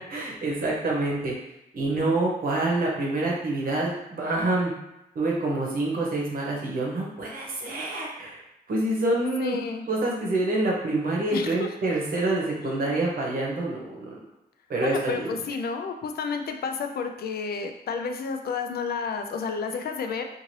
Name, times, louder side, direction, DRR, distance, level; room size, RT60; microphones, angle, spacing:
voice 1, 0.0-1.4 1.7-4.7 5.1-8.4 8.7-9.6 9.9-14.2 14.7-15.3, right 2 dB, 60° right, -3 dB, 0.9 m, -27 dB
voice 2, 9.4-9.9 11.3-11.8 12.6-13.0 14.8-20.2, left 5 dB, 70° left, 5 dB, 0.4 m, -31 dB
2.6 x 2.5 x 3.1 m, 0.89 s
wide cardioid pair, 115°, 16 cm